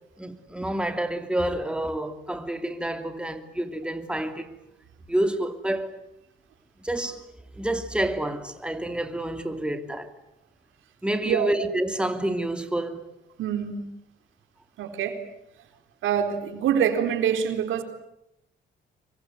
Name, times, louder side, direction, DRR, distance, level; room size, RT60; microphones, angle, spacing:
voice 1, 0.2-4.5 5.1-6.0 6.8-7.2 7.5-10.1 11.0-13.1, right 1 dB, 5° right, 2.8 m, -28 dB
voice 2, 13.4-13.8 14.8-15.2 16.0-17.8, right 8 dB, 85° right, 4.1 m, -25 dB
26.5 x 23.5 x 9.3 m
cardioid pair, 90°, 20 cm